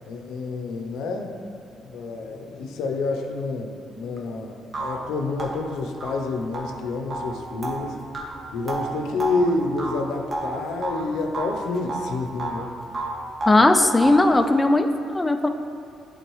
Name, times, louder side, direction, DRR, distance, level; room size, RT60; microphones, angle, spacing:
voice 1, 0.1-1.3 1.8-8.0 8.5-12.7 13.6-13.7, left 3 dB, 85° left, 4 dB, 0.5 m, -28 dB
sound 1, 4.2-4.3 4.7-11.0 11.3-12.7 12.9-14.3, right 2 dB, 35° right, 0.9 m, -31 dB
voice 2, 13.5-15.5, left 2 dB, 15° left, 7 dB, 0.3 m, -18 dB
8.2 x 3.9 x 3.1 m, 2.7 s
cardioid pair, 90°, 0 cm